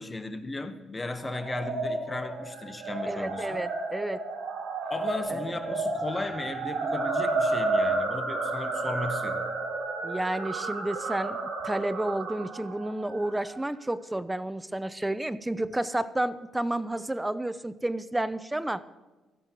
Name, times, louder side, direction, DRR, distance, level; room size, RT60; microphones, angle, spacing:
voice 1, 0.0-3.6 4.9-9.4, left 2 dB, 20° left, 1.0 m, -36 dB
sound 1, 1.2-13.6, right 3 dB, 70° right, 3.4 m, -31 dB
voice 2, 3.1-4.2 5.3-5.4 10.0-18.8, right 1 dB, 10° right, 0.5 m, -31 dB
16.5 x 14.0 x 3.0 m
cardioid pair, 90°, 0 cm